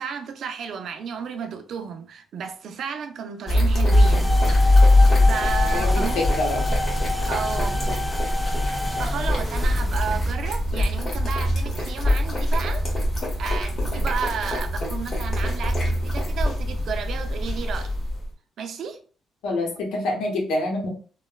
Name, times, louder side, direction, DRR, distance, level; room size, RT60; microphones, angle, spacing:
voice 1, 0.0-6.2 7.3-8.0 9.0-12.8 13.4-18.0 18.6-19.0, right 7 dB, 65° right, 0.4 m, -33 dB
sound 1, 3.5-18.3, left 1 dB, 40° left, 1.2 m, -22 dB
sound 2, 3.9-10.3, left 2 dB, ahead, 0.3 m, -30 dB
voice 2, 5.6-6.6 19.4-20.9, left 2 dB, 85° left, 0.8 m, -26 dB
3.1 x 2.1 x 2.3 m
cardioid pair, 90°, 0 cm